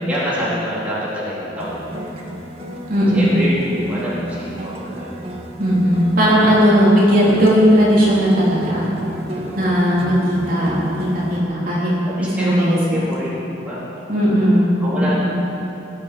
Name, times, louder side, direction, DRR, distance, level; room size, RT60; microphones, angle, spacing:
voice 1, 0.0-2.1 3.1-5.1 9.3-9.8 11.1-11.4 12.1-13.8 14.8-15.1, equal, 5° right, -10 dB, 3.8 m, -27 dB
sound 1, 1.6-11.4, right 1 dB, 30° right, 1.8 m, -33 dB
voice 2, 2.9-3.4 5.6-8.9 9.5-11.9 12.2-12.8 14.1-15.1, equal, 45° right, -7 dB, 3.7 m, -16 dB
19.0 x 7.3 x 8.6 m, 3.0 s
head